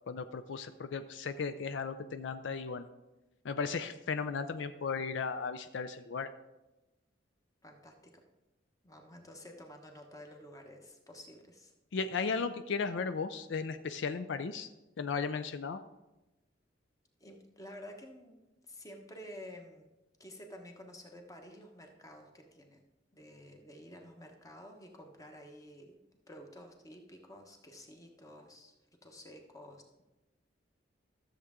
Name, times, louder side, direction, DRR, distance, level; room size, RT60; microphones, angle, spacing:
voice 1, 0.1-2.8 3.4-6.3 11.9-14.7 15.0-15.8, left 5 dB, 75° left, 11 dB, 0.4 m, -35 dB
voice 2, 7.6-8.2 8.8-11.7 17.2-18.4 18.6-19.9 20.2-22.8 23.1-26.0 26.3-28.7 29.0-30.0, equal, 20° left, 3 dB, 1.1 m, -51 dB
13.0 x 7.2 x 3.6 m, 1.0 s
head